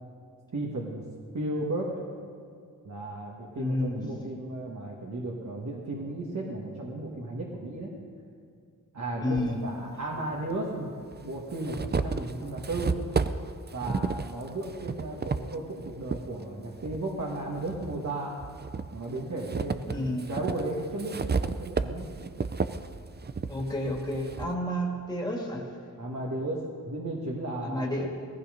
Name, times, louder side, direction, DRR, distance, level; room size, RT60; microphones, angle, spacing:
voice 1, 0.5-1.1 1.3-2.0 2.8-7.9 8.9-10.9 11.2-12.9 13.7-18.4 18.9-20.0 20.3-22.1 26.0-27.8, right 2 dB, 55° right, -3 dB, 2.0 m, -34 dB
voice 2, 3.6-4.1 9.2-9.6 19.9-20.3 23.5-25.6 27.6-28.1, left 1 dB, 10° left, -2 dB, 2.5 m, -30 dB
sound 1, 9.4-9.5 10.5-10.6 11.1-16.2 16.8-18.0 18.4-24.5, right 4 dB, 30° right, 0.5 m, -32 dB
18.5 x 14.5 x 5.3 m, 2.3 s
wide cardioid pair, 130°, 34 cm